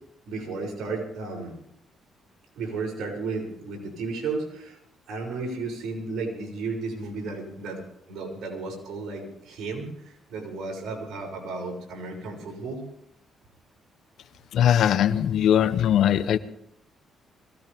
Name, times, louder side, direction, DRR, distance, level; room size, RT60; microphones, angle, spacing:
voice 1, 0.2-1.5 2.6-4.8 5.1-12.8, right 3 dB, 75° right, 6.6 m, -33 dB
voice 2, 14.5-16.4, left 10 dB, 75° left, 0.9 m, -20 dB
23.0 x 17.0 x 3.6 m
cardioid pair, 90°, 0 cm